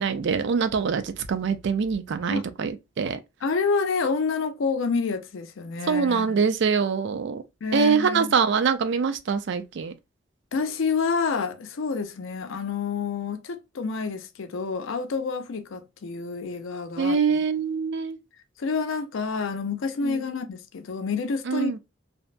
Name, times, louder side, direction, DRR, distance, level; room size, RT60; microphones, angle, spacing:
voice 1, 0.0-3.2 5.9-7.4 7.7-9.9 17.0-18.2 20.0-20.2 21.5-21.8, right 5 dB, 65° right, 0.4 m, -24 dB
voice 2, 3.4-6.4 7.6-8.3 10.5-17.4 18.6-21.8, left 4 dB, 85° left, 0.5 m, -28 dB
2.7 x 2.2 x 2.4 m
head